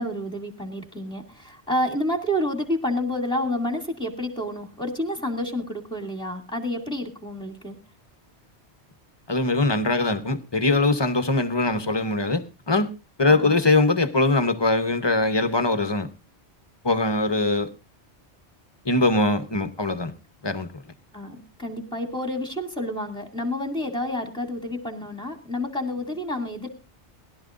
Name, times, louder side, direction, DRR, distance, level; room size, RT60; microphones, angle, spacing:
voice 1, 0.0-7.8 13.3-13.6 21.1-26.7, left 1 dB, 5° left, 2.3 m, -29 dB
voice 2, 9.3-12.9 13.2-16.1 16.8-17.7 18.8-20.1 20.4-20.7, left 2 dB, 25° left, 0.8 m, -22 dB
21.0 x 12.0 x 2.5 m
omnidirectional pair, 1.2 m